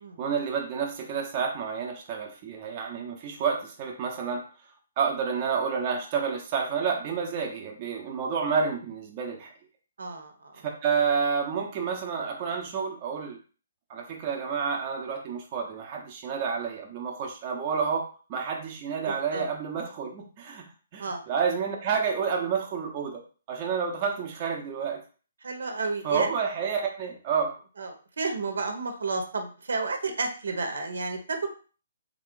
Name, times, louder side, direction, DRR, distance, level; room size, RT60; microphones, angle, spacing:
voice 1, 0.2-4.4 5.0-9.5 10.8-13.4 13.9-20.7 20.9-23.2 23.5-25.0 26.0-27.5, right 6 dB, 30° right, 0 dB, 0.7 m, -29 dB
voice 2, 10.0-10.6 19.0-19.4 21.0-21.2 25.4-26.3 27.8-31.5, right 3 dB, 85° right, 5 dB, 0.9 m, -31 dB
3.6 x 2.4 x 3.7 m, 0.38 s
hypercardioid pair, 165°, 0 cm